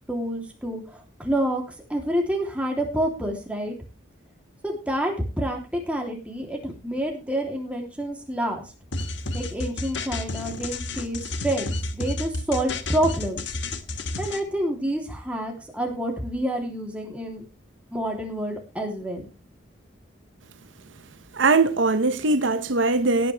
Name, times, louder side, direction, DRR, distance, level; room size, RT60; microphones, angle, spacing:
voice 1, 0.1-0.8 1.2-1.6 1.9-3.7 4.6-8.6 9.3-13.4 14.2-17.4 17.9-19.2, right 1 dB, 5° right, 3.1 m, -28 dB
sound 1, 8.9-14.4, left 2 dB, 65° left, 1.4 m, -31 dB
voice 2, 21.3-23.3, right 3 dB, 75° right, 0.9 m, -21 dB
18.0 x 9.1 x 3.4 m
head